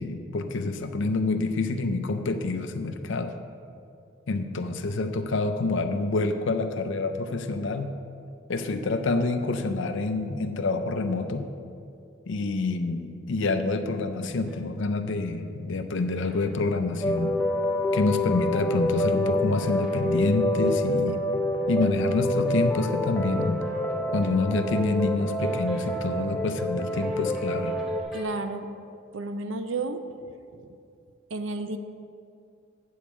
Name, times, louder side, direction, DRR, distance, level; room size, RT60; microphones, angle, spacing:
voice 1, 0.0-3.3 4.3-7.9 8.5-11.5 12.3-17.3 17.9-21.2 21.7-23.6 24.1-27.7, left 3 dB, 65° left, 8 dB, 0.5 m, -27 dB
sound 1, 14.1-14.7 15.0-17.4 17.7-18.3 18.6-21.0 21.3-24.5 24.8-28.2, equal, 5° right, 1.2 m, -47 dB
sound 2, 17.0-28.0, left 1 dB, 10° left, 0.5 m, -27 dB
voice 2, 28.1-28.7 29.1-30.0 31.3-31.8, right 3 dB, 70° right, 9 dB, 0.6 m, -31 dB
8.7 x 4.7 x 7.3 m, 2.5 s
head